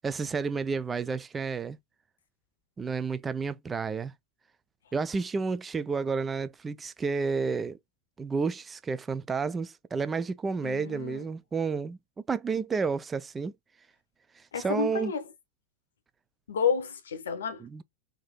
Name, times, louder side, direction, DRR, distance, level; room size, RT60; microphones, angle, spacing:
voice 1, 0.0-1.8 2.8-4.1 4.9-7.8 8.2-12.0 12.3-13.5 14.6-15.1 17.6-17.8, right 5 dB, 15° right, 0.3 m, -31 dB
voice 2, 10.6-11.2 14.5-15.2 16.5-17.6, left 6 dB, 65° left, 0.9 m, -30 dB
3.6 x 2.7 x 3.8 m
figure-of-eight pair, 90°, 0 cm